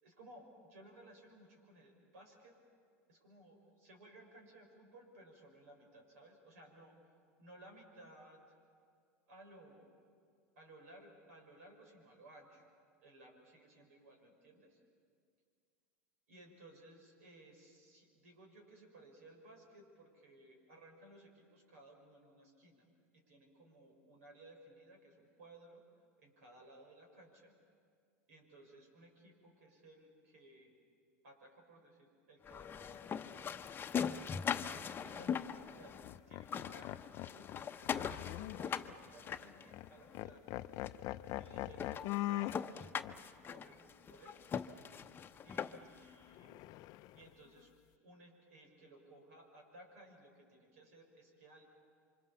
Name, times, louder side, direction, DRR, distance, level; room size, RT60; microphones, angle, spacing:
voice 1, 0.0-2.5 3.1-7.1 7.4-8.4 9.3-9.9 10.6-12.6 13.0-14.8 16.3-22.9 23.1-25.8 26.2-27.5 28.3-30.7 31.2-33.1 34.1-38.3 38.6-40.4 41.3-44.4 45.4-46.5 47.1-47.7 48.0-51.7, right 1 dB, 75° right, 2 dB, 6.3 m, -59 dB
sound 1, 32.4-36.2 36.4-40.2 40.9-41.0 41.4-41.5 41.8-46.0, left 7 dB, 25° left, 0.8 m, -41 dB
sound 2, 35.2-35.5 36.0-38.9 39.3-39.4 39.7-39.9 40.1-42.6 43.0-43.2 46.3-47.3, left 16 dB, 50° left, 0.5 m, -42 dB
28.0 x 25.0 x 7.2 m, 2.2 s
hypercardioid pair, 95°, 8 cm